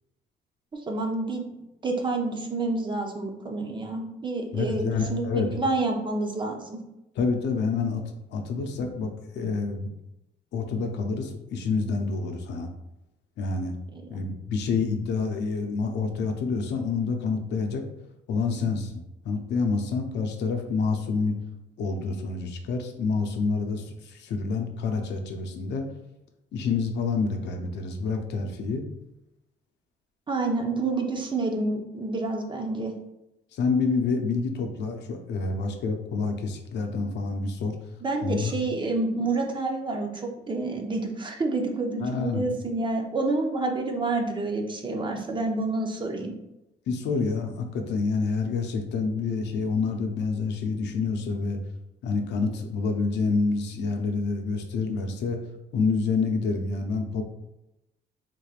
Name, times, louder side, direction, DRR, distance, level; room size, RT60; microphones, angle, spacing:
voice 1, 0.9-1.5 1.8-6.8 30.3-32.9 38.0-46.3, right 2 dB, 25° right, 2 dB, 0.6 m, -28 dB
voice 2, 4.5-5.5 7.2-8.0 8.3-9.9 10.5-12.7 13.4-13.7 14.1-17.8 18.3-19.0 19.3-21.4 21.8-25.9 26.5-28.8 33.5-37.8 38.2-38.5 42.0-42.4 46.9-51.6 52.0-55.4 55.7-57.2, left 4 dB, 80° left, 4 dB, 0.6 m, -28 dB
3.7 x 3.3 x 2.4 m, 0.89 s
cardioid pair, 115°, 18 cm